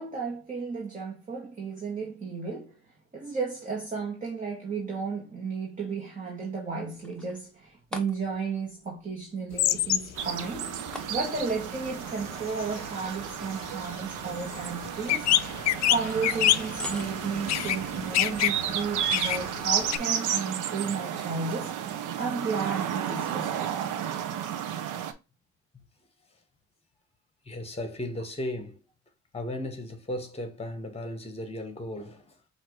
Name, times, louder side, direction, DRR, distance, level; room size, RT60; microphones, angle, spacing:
voice 1, 0.0-2.8 3.1-10.7 11.1-15.5 15.9-21.7 22.2-23.8, right 5 dB, 25° right, 1.7 m, -33 dB
sound 1, 6.7-18.4, left 1 dB, 5° left, 1.1 m, -47 dB
sound 2, 9.5-10.3 10.5-20.0, left 13 dB, 60° left, 0.4 m, -28 dB
sound 3, 10.1-25.1, right 9 dB, 90° right, 0.8 m, -33 dB
voice 2, 27.4-28.8 29.3-32.4, left 1 dB, 20° left, 1.4 m, -35 dB
5.8 x 2.8 x 3.1 m
cardioid pair, 90°, 30 cm